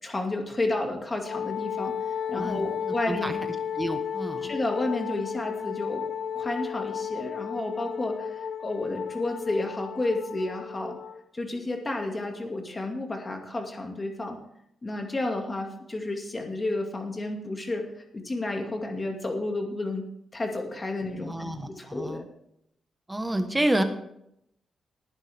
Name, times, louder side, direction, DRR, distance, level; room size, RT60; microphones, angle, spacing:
voice 1, 0.0-1.9 2.3-3.3 4.4-6.1 6.3-11.0 11.3-14.4 14.8-20.0 20.3-22.3, left 2 dB, 20° left, 2 dB, 2.2 m, -31 dB
Wind instrument woodwind instrument, 1.2-11.2, left 8 dB, 65° left, 1.1 m, -33 dB
voice 2, 2.3-3.4 3.7-4.5 21.2-22.3 23.1-23.8, right 1 dB, 10° right, 7 dB, 1.3 m, -29 dB
19.0 x 10.0 x 3.6 m, 0.77 s
wide cardioid pair, 160°, 0 cm